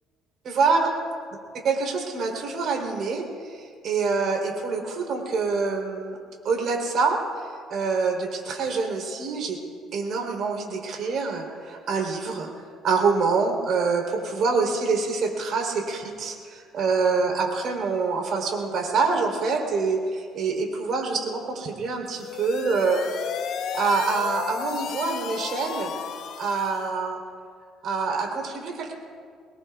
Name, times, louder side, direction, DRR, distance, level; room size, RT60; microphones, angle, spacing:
voice 1, 0.4-1.0 1.6-6.2 6.4-9.6 9.9-23.0 23.7-25.9 26.4-27.2 27.8-28.9, right 4 dB, 55° right, 1 dB, 3.7 m, -26 dB
sound 1, 22.1-26.9, left 7 dB, 65° left, 1.0 m, -33 dB
25.0 x 20.5 x 2.4 m, 2.1 s
cardioid pair, 115°, 0 cm